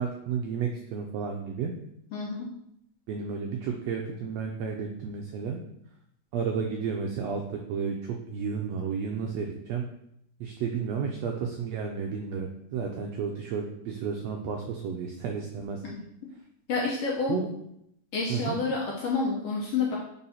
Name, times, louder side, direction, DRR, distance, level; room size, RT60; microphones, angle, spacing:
voice 1, 0.0-1.7 3.1-5.6 6.3-9.8 10.4-15.8 17.3-17.5 18.3-18.6, right 6 dB, 85° right, 2 dB, 1.5 m, -32 dB
voice 2, 2.1-2.5 15.8-16.0 16.7-17.4 18.1-20.0, left 4 dB, 70° left, -2 dB, 1.5 m, -29 dB
4.6 x 4.1 x 5.6 m, 0.77 s
omnidirectional pair, 3.6 m